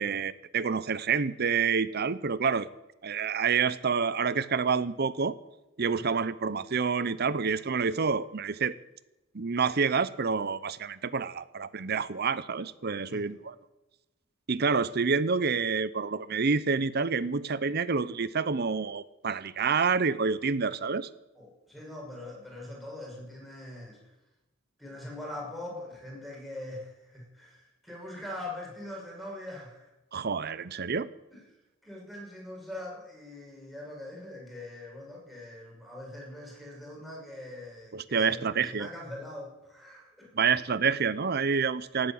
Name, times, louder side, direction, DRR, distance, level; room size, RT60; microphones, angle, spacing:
voice 1, 0.0-2.7 3.0-5.3 5.8-8.7 9.3-13.5 14.5-21.1 30.1-31.1 37.9-38.9 40.3-42.1, right 5 dB, 50° right, 16 dB, 0.7 m, -28 dB
voice 2, 13.0-13.4 21.4-24.0 24.8-29.9 30.5-30.6 31.3-31.5 31.8-40.3, left 1 dB, ahead, -2 dB, 5.7 m, -42 dB
17.5 x 8.8 x 8.7 m, 1.0 s
head